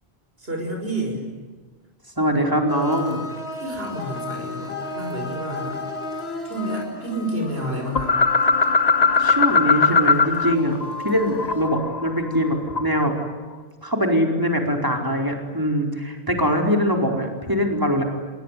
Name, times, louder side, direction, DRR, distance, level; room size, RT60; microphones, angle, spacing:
voice 1, 0.4-1.2 3.6-5.8 6.4-8.2, right 1 dB, 70° right, 1 dB, 6.1 m, -29 dB
voice 2, 2.2-3.2 9.2-10.8 11.0-13.1 13.8-18.0, equal, 20° right, 2 dB, 4.8 m, -22 dB
sound 1, 2.7-11.7, left 2 dB, 85° left, 4.0 m, -35 dB
sound 2, 8.0-10.6 10.8-13.1, left 4 dB, 40° left, 1.0 m, -20 dB
29.0 x 21.5 x 9.4 m, 1.4 s
omnidirectional pair, 1.0 m